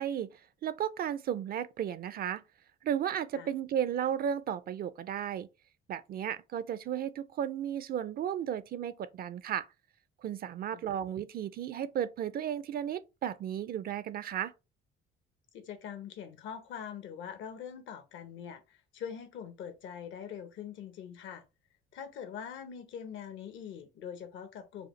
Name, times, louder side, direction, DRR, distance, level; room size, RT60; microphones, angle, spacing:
voice 1, 0.0-2.4 2.8-5.5 5.9-9.7 10.2-14.5, right 9 dB, 45° right, 0.4 m, -34 dB
voice 2, 15.5-21.4 21.9-24.9, left 8 dB, 70° left, 1.0 m, -43 dB
4.8 x 2.3 x 3.1 m
cardioid pair, 100°, 21 cm